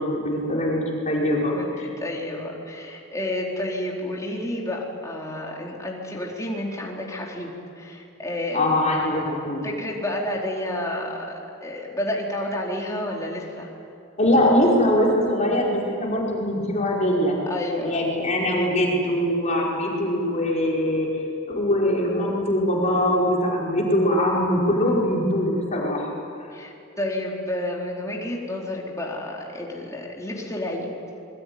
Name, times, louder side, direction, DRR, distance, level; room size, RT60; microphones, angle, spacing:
voice 1, 0.0-1.8 8.5-9.6 14.2-17.4 17.8-21.2 21.5-26.1, left 1 dB, 35° left, -3 dB, 5.2 m, -22 dB
voice 2, 1.5-8.7 9.6-13.7 17.5-18.0 26.5-30.9, left 1 dB, 15° left, -2 dB, 4.3 m, -30 dB
25.5 x 22.5 x 9.7 m, 2.6 s
head